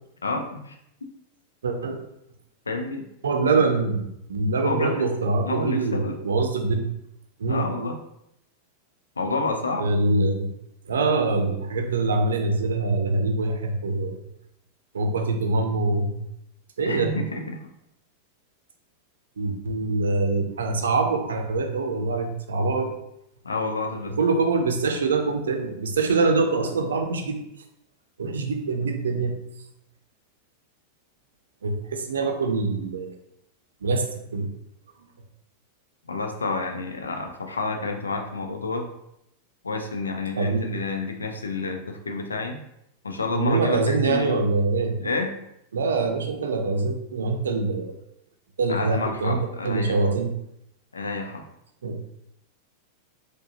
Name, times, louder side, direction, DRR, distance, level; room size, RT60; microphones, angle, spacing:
voice 1, 0.2-1.1 2.7-3.1 3.5-3.7 4.6-5.1 5.4-6.2 7.5-8.0 9.2-9.9 16.9-17.7 23.4-24.2 36.1-38.9 39.6-42.6 43.0-44.4 45.0-45.3 48.7-50.1 50.9-51.4, left 3 dB, 75° left, 4 dB, 0.5 m, -29 dB
voice 2, 1.6-2.0 3.2-6.9 7.4-7.7 9.8-10.5 10.9-14.2 14.9-16.2 16.8-17.2 19.4-23.0 24.2-27.4 28.2-29.4 31.6-33.1 33.8-34.5 40.4-40.7 43.3-45.0 45.7-47.9 48.6-50.3 51.8-52.0, right 3 dB, 65° right, 4 dB, 0.5 m, -24 dB
4.7 x 2.2 x 2.7 m, 0.79 s
figure-of-eight pair, 90°, 0 cm